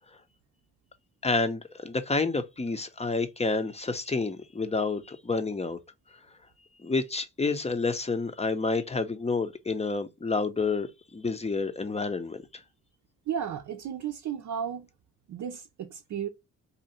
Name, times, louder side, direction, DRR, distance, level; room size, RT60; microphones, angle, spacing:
voice 1, 1.2-5.8 6.8-12.6, left 3 dB, 20° left, 0.6 m, -29 dB
voice 2, 13.3-14.9 15.3-16.3, right 8 dB, 65° right, 0.6 m, -34 dB
2.7 x 2.4 x 4.1 m
cardioid pair, 60°, 32 cm